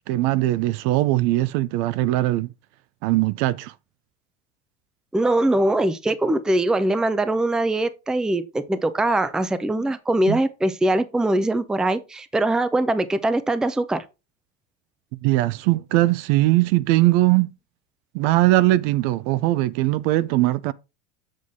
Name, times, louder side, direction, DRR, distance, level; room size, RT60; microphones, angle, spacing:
voice 1, 0.1-2.5 3.0-3.7 10.3-10.4 15.2-17.5 18.1-20.7, right 17 dB, 60° right, 0.6 m, -20 dB
voice 2, 5.1-14.0, right 1 dB, ahead, 0.5 m, -22 dB
7.6 x 6.2 x 3.6 m
supercardioid pair, 105°, 42 cm